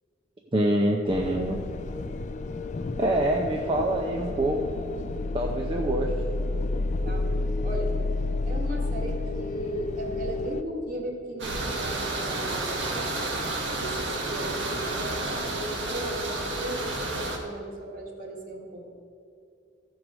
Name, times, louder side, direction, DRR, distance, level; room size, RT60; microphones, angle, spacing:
voice 1, 0.5-1.6 3.0-4.6 5.3-6.1, right 1 dB, 25° right, 1 dB, 0.6 m, -25 dB
sound 1, 1.1-10.6, left 2 dB, 40° left, 0.4 m, -30 dB
voice 2, 7.0-7.9 8.4-13.4 13.8-18.9, right 1 dB, 45° right, 0 dB, 1.7 m, -36 dB
sound 2, 11.4-17.4, right 2 dB, 75° right, 1.4 m, -31 dB
14.0 x 4.8 x 6.2 m, 2.4 s
head